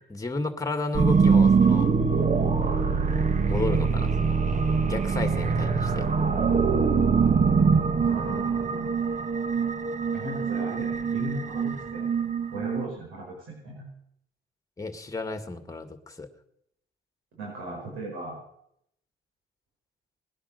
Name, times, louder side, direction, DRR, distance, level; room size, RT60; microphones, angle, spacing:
voice 1, 0.0-1.9 3.4-4.4 4.9-6.1 14.8-16.3, left 3 dB, 15° left, 8 dB, 2.1 m, -32 dB
sound 1, 0.9-12.9, right 5 dB, 40° right, 1.3 m, -23 dB
voice 2, 8.0-8.9 10.1-12.2 12.5-13.9 17.3-18.4, right 2 dB, 85° right, -1 dB, 5.2 m, -37 dB
20.0 x 10.0 x 6.7 m, 0.75 s
cardioid pair, 90°, 20 cm